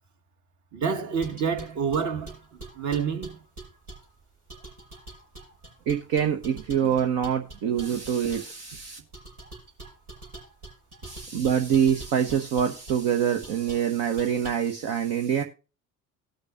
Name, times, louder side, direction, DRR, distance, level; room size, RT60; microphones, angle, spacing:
voice 1, 0.7-3.4, right 6 dB, 40° right, 1.5 m, -28 dB
sound 1, 1.2-4.1 4.5-8.5 9.1-13.0 13.4-13.9 14.2-14.5, right 2 dB, 85° right, 5.5 m, -44 dB
voice 2, 5.9-9.0 11.0-15.4, right 8 dB, 55° right, 1.0 m, -25 dB
18.5 x 6.5 x 2.5 m
figure-of-eight pair, 55°, 44 cm